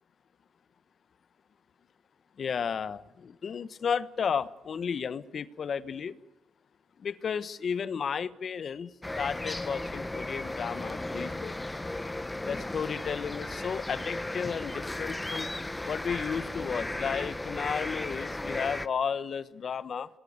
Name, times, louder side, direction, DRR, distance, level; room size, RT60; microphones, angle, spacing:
voice 1, 2.4-6.2 7.0-8.9 9.2-11.6 12.4-15.5 15.8-20.1, left 6 dB, 50° left, 15 dB, 1.2 m, -33 dB
sound 1, 9.0-18.9, left 2 dB, 15° left, 1.1 m, -35 dB
26.5 x 20.5 x 8.2 m, 0.86 s
cardioid pair, 90°, 0 cm